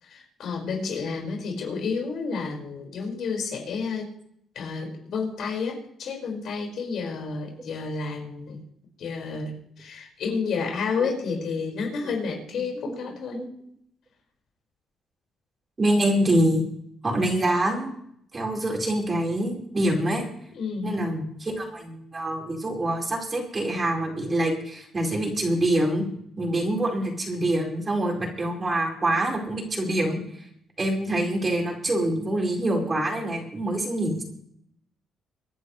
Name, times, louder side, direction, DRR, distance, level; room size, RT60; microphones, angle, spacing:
voice 1, 0.0-4.1 4.6-8.6 9.0-13.5 20.5-20.9, left 5 dB, 70° left, 1 dB, 5.4 m, -30 dB
voice 2, 15.8-16.6 17.0-17.9 18.3-20.2 20.8-26.0 26.4-30.2 30.8-34.2, right 1 dB, 30° right, 1 dB, 4.6 m, -25 dB
25.5 x 10.5 x 3.3 m, 0.70 s
cardioid pair, 90°, 0 cm